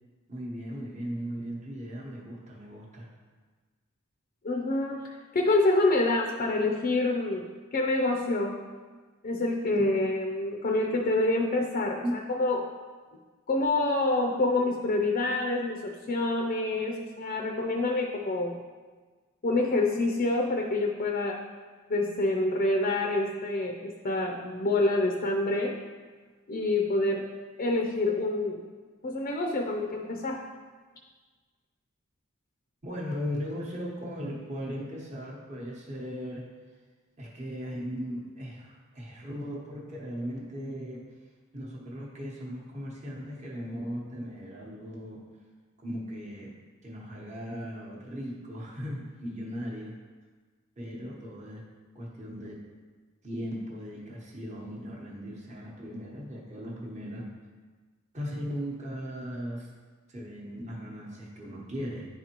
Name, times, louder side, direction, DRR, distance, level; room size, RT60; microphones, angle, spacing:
voice 1, 0.3-3.1 9.7-9.8 12.0-12.2 32.8-36.5 37.2-41.0 41.5-45.2 45.8-46.5 46.8-49.9 50.8-51.6 51.9-52.6 53.2-57.3 58.1-59.7 60.1-62.1, equal, 30° right, -4 dB, 1.0 m, -37 dB
voice 2, 4.4-7.4 7.7-8.6 9.2-12.6 13.5-18.6 19.4-21.4 21.9-25.8 26.5-27.3 27.6-28.6 29.0-30.5, left 2 dB, 40° left, 1 dB, 0.5 m, -27 dB
10.5 x 4.0 x 3.0 m, 1.4 s
head